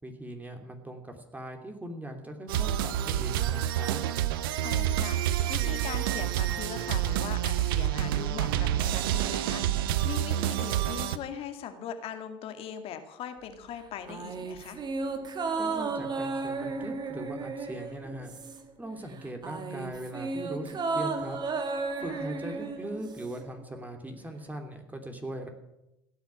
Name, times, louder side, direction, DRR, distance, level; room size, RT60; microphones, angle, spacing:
voice 1, 0.0-4.0 15.6-18.3 18.8-21.4 22.0-25.5, right 1 dB, 15° right, 4 dB, 3.0 m, -40 dB
sound 1, 2.5-11.2, right 12 dB, 75° right, 0.8 m, -28 dB
voice 2, 4.6-14.8 22.0-22.3, left 8 dB, 55° left, 7 dB, 2.2 m, -40 dB
sound 2, 14.1-18.8 19.1-23.4 23.7-23.8, right 4 dB, 35° right, 2.1 m, -34 dB
17.0 x 9.6 x 8.6 m, 0.89 s
hypercardioid pair, 65°, 12 cm